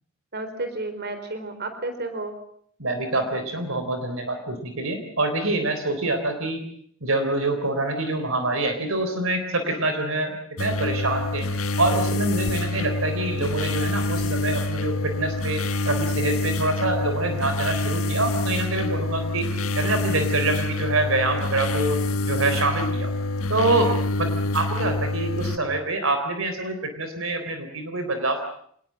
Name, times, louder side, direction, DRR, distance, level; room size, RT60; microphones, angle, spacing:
voice 1, 0.3-2.3 12.6-12.9 18.9-19.0 23.9-24.0, right 2 dB, 50° right, 8 dB, 4.2 m, -32 dB
voice 2, 2.8-6.6 7.0-11.5 11.8-19.4 19.8-22.0 22.3-23.1 23.5-24.3 24.5-28.4, right 2 dB, 70° right, 7 dB, 3.9 m, -26 dB
sound 1, 10.6-25.6, left 2 dB, 90° left, 1.6 m, -26 dB
26.5 x 20.0 x 7.5 m, 0.64 s
head